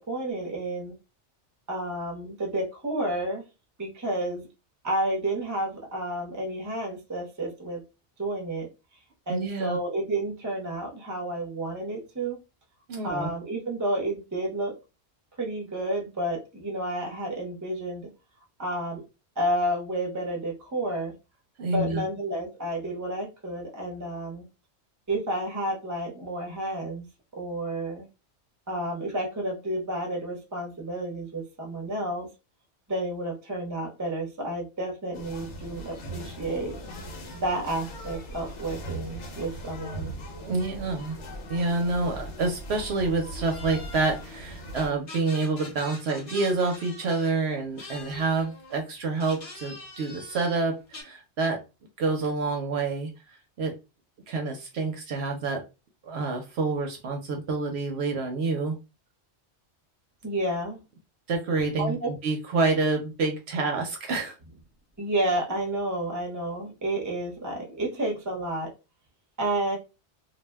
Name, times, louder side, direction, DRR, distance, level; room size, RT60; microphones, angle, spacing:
voice 1, 0.1-0.9 1.7-3.4 3.8-4.5 4.8-7.8 8.2-8.7 9.3-12.4 13.0-14.7 15.4-18.1 18.6-19.0 19.4-21.1 21.7-24.4 25.1-27.1 27.4-28.1 28.7-32.3 32.9-36.7 37.4-40.1 60.2-60.8 61.8-62.1 65.0-68.7 69.4-69.8, right 1 dB, 20° right, 0 dB, 0.7 m, -30 dB
voice 2, 9.3-9.8 12.9-13.3 21.6-22.0 40.4-41.2 41.5-51.6 52.0-53.7 54.3-55.6 56.0-58.7 61.3-61.9 62.2-64.4, right 3 dB, 70° right, 3 dB, 0.8 m, -28 dB
sound 1, 35.1-44.9, right 1 dB, 85° left, 1.0 m, -39 dB
sound 2, 43.4-44.3 44.7-47.4 47.8-48.8 49.1-51.0, left 3 dB, 50° left, 1.0 m, -44 dB
2.4 x 2.1 x 3.3 m, 0.28 s
omnidirectional pair, 1.2 m